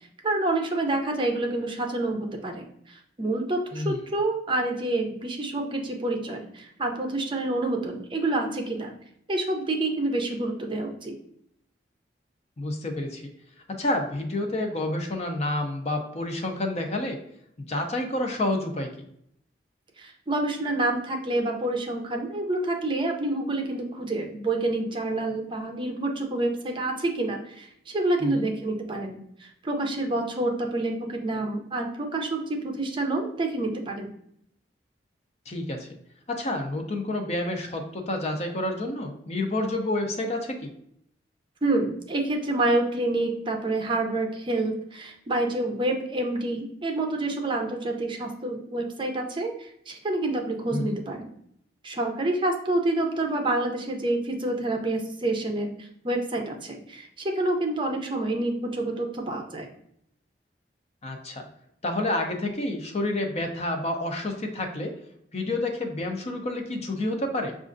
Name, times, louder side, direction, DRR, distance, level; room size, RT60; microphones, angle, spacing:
voice 1, 0.2-8.9 9.3-11.1 20.0-34.1 41.6-51.3 51.8-59.7, right 2 dB, 30° right, 3 dB, 0.5 m, -28 dB
voice 2, 12.6-13.2 13.7-17.2 17.7-18.9 28.2-28.5 35.5-35.9 36.3-40.7 50.7-51.0 61.0-61.5 61.8-64.9 65.3-67.6, left 1 dB, 40° left, 4 dB, 0.6 m, -29 dB
6.2 x 2.4 x 2.5 m, 0.72 s
head